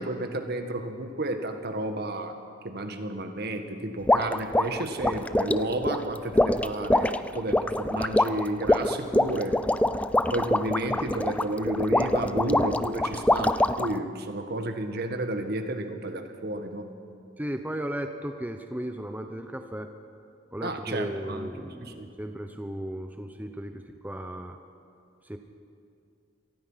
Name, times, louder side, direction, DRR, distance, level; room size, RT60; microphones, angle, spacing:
voice 1, 0.0-2.4 2.6-9.6 10.3-16.9 20.6-21.5 21.8-22.1, right 1 dB, 55° right, 6 dB, 1.7 m, -31 dB
sound 1, 4.1-14.0, left 1 dB, 5° left, 0.4 m, -25 dB
voice 2, 17.4-19.9 20.5-24.6 25.2-25.4, right 1 dB, 10° right, 6 dB, 0.8 m, -35 dB
25.5 x 19.0 x 5.7 m, 2.5 s
head